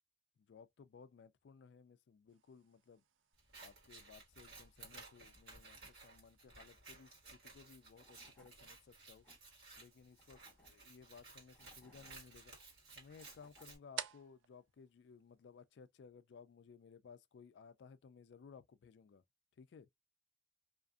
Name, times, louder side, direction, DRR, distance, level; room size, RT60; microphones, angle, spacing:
voice 1, 0.4-3.0 3.6-9.2 9.8-12.6 13.0-19.2 19.6-19.9, left 6 dB, 60° left, 0.3 m, -59 dB
sound 1, 2.3-15.9, right 9 dB, 75° right, 0.4 m, -57 dB
Scissors, 3.4-13.8, right 3 dB, 55° right, 1.4 m, -57 dB
Tools / Wood, 7.6-7.7 8.0-8.5 9.0-9.4 10.1-10.7 11.3-12.1 12.9-13.7, left 2 dB, 10° left, 1.1 m, -67 dB
2.4 x 2.4 x 2.3 m
head